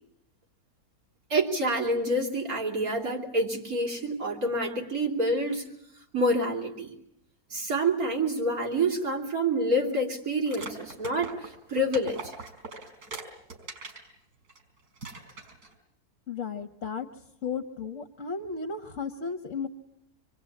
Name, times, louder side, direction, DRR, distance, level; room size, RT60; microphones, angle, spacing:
voice 1, 1.3-5.7 6.1-6.9 7.5-12.3, right 1 dB, 65° right, 1 dB, 3.6 m, -27 dB
sound 1, 10.5-14.1 14.5-14.6 15.0-15.7, right 3 dB, 80° right, 5.3 m, -41 dB
voice 2, 16.3-17.1 17.4-19.7, left 5 dB, 55° left, 7 dB, 1.6 m, -34 dB
27.0 x 22.5 x 8.6 m, 0.78 s
omnidirectional pair, 1.6 m